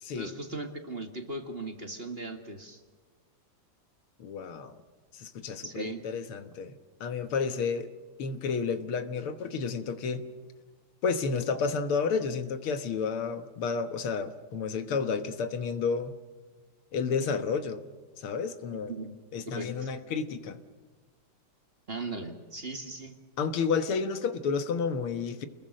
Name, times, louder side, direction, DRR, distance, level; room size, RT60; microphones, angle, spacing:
voice 1, 0.1-2.8 5.6-6.1 18.9-19.2 19.5-19.9 21.9-23.2, right 2 dB, 30° right, 5 dB, 1.9 m, -38 dB
voice 2, 4.2-4.8 5.1-7.9 8.2-10.3 11.0-16.1 16.9-17.8 18.2-18.9 19.3-20.6 23.4-25.5, left 5 dB, 80° left, 9 dB, 2.2 m, -31 dB
29.5 x 21.5 x 6.4 m, 1.4 s
omnidirectional pair, 2.4 m